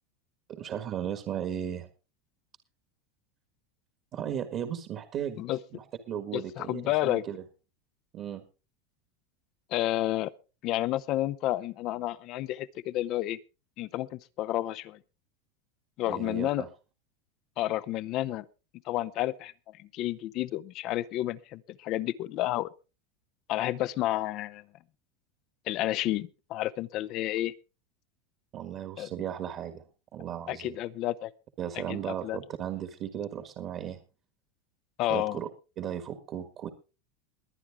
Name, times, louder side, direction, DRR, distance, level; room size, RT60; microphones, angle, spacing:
voice 1, 0.5-1.9 4.1-5.4 5.7-7.4 8.1-8.4 16.1-16.7 28.5-29.8 30.1-30.8 31.6-34.0 35.1-35.5 35.8-36.7, right 10 dB, 40° right, 1.7 m, -36 dB
voice 2, 6.3-7.2 9.7-10.3 10.6-13.4 13.8-15.0 16.0-16.7 17.6-18.4 18.9-19.5 19.8-22.7 23.5-24.6 25.7-27.5 29.0-29.1 30.5-31.3 31.9-32.4 35.0-35.4, left 15 dB, 45° left, 0.7 m, -30 dB
21.5 x 9.4 x 3.6 m
supercardioid pair, 145°, 0 cm